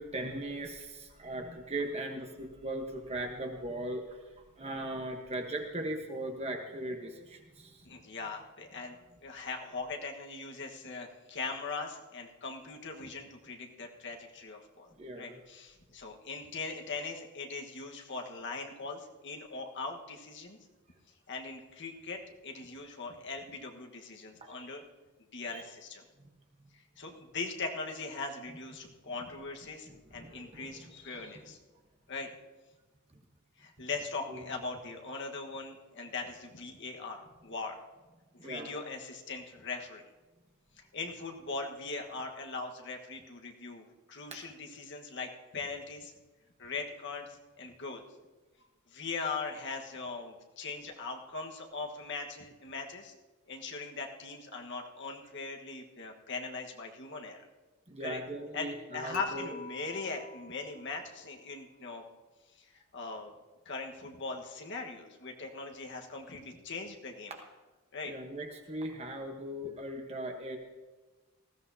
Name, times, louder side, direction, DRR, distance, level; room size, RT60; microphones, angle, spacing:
voice 1, 0.0-4.2 4.6-7.9 15.0-15.4 24.4-24.7 25.5-25.6 29.8-31.4 33.1-33.2 34.3-34.4 38.4-38.8 44.3-44.4 57.9-59.6 67.3-67.4 68.1-70.6, right 1 dB, 30° right, 3 dB, 1.2 m, -39 dB
voice 2, 7.8-9.0 9.2-14.9 15.2-20.6 21.3-24.8 25.3-26.0 27.0-31.6 32.1-32.3 33.6-37.8 38.4-40.0 40.8-46.1 46.6-48.0 48.9-53.1 53.5-57.5 58.0-58.2 58.5-62.0 62.6-63.3 63.6-67.3 67.9-68.1, left 4 dB, 55° left, 2 dB, 1.4 m, -40 dB
Dishes pots and pans / Chink clink, 59.1-61.3, left 6 dB, 40° left, 1.5 m, -46 dB
19.5 x 14.5 x 2.8 m, 1.2 s
head